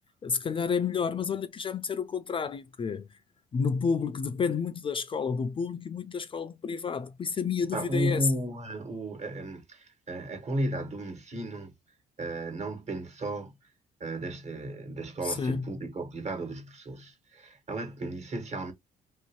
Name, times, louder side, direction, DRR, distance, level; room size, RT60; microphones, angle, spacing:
voice 1, 0.2-3.1 3.5-8.3 15.2-15.7, left 5 dB, 35° left, 0.4 m, -30 dB
voice 2, 7.7-11.7 12.2-13.5 14.0-18.7, right 1 dB, 45° right, 1.4 m, -34 dB
3.0 x 2.8 x 2.9 m
cardioid pair, 100°, 16 cm